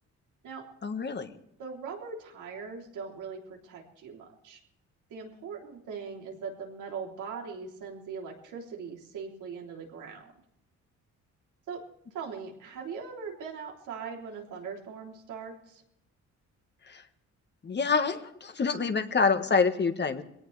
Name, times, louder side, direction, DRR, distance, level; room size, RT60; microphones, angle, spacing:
voice 1, 0.8-1.3 16.9-17.0 17.6-20.2, left 5 dB, 35° left, 8 dB, 1.6 m, -27 dB
voice 2, 1.6-4.6 5.1-10.3 11.7-11.8 12.1-15.8, right 5 dB, 85° right, -1 dB, 3.5 m, -40 dB
22.0 x 17.5 x 3.4 m, 0.79 s
cardioid pair, 90°, 30 cm